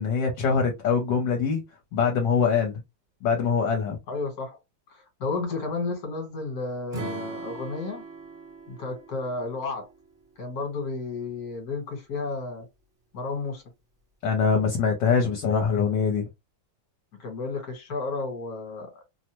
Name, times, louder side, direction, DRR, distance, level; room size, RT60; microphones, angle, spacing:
voice 1, 0.0-1.6 1.9-2.8 3.2-4.0 14.2-16.2, left 5 dB, 70° left, 1.3 m, -23 dB
voice 2, 4.1-4.6 4.9-8.0 8.7-9.9 10.4-12.7 13.1-13.6 17.2-18.9, left 3 dB, 55° left, 1.5 m, -32 dB
Acoustic guitar / Strum, 6.9-10.2, right 3 dB, 40° right, 0.9 m, -39 dB
3.1 x 2.1 x 2.9 m
omnidirectional pair, 2.1 m